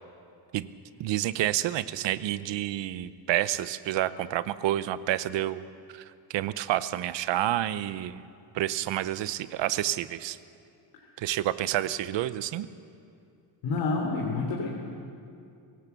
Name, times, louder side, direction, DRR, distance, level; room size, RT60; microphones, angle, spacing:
voice 1, 1.0-5.6 5.9-8.2 8.5-10.4 11.2-12.7, right 13 dB, 75° right, 15 dB, 0.8 m, -29 dB
voice 2, 13.6-14.7, left 3 dB, 75° left, -1 dB, 3.2 m, -28 dB
24.5 x 18.0 x 6.9 m, 2.5 s
cardioid pair, 165°, 44 cm